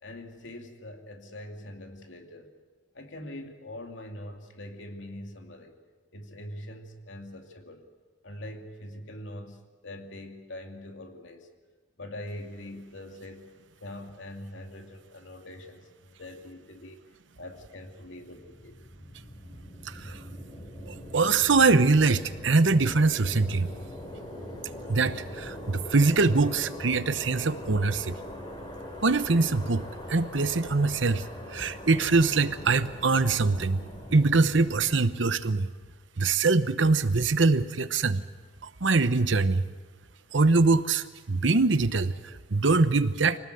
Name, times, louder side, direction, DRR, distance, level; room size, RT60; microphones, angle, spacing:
voice 1, 0.0-2.5 2.9-5.7 6.1-7.8 8.2-11.5 12.0-13.5 13.8-17.0 17.4-18.8, left 1 dB, 80° left, 4 dB, 2.6 m, -43 dB
sound 1, 17.8-35.0, left 1 dB, 25° left, 3.6 m, -41 dB
voice 2, 19.8-20.2 20.9-23.7 24.9-28.2 29.0-33.8 34.1-35.7 36.2-38.2 38.8-39.6 40.3-43.4, right 3 dB, 75° right, 13 dB, 1.0 m, -23 dB
24.5 x 18.5 x 7.9 m, 1.4 s
head